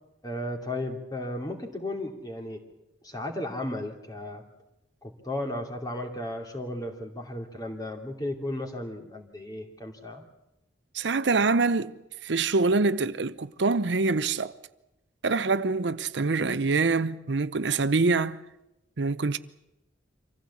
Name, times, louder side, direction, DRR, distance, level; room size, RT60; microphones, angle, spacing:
voice 1, 0.2-2.6 3.0-4.4 5.0-10.2, left 1 dB, 20° left, 2.7 m, -34 dB
voice 2, 10.9-14.5 15.2-18.4 19.0-19.4, right 3 dB, 70° right, 0.7 m, -25 dB
25.5 x 15.5 x 8.5 m
head